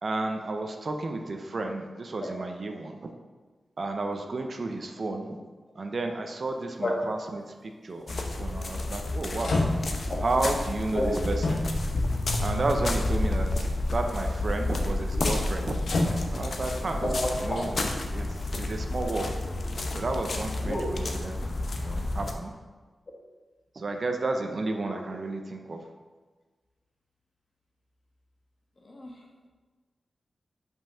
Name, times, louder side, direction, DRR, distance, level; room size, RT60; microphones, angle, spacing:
voice 1, 0.0-3.1 3.8-5.4 5.7-9.6 10.2-11.7 12.4-15.8 16.3-17.1 17.4-19.3 19.9-22.5 23.7-25.8, right 2 dB, 45° right, 4 dB, 0.6 m, -32 dB
sound 1, 7.9-8.2 8.9-9.0 9.4-10.1 11.4-12.0 12.9-13.0 15.7-16.6 17.4-17.7, left 2 dB, 70° left, 1.0 m, -28 dB
sound 2, 8.1-22.3, left 2 dB, 50° left, 0.7 m, -30 dB
voice 2, 17.0-17.6 20.6-20.9 28.8-29.1, left 1 dB, 35° left, -1 dB, 1.3 m, -29 dB
5.7 x 5.4 x 5.5 m, 1.4 s
wide cardioid pair, 155°, 0 cm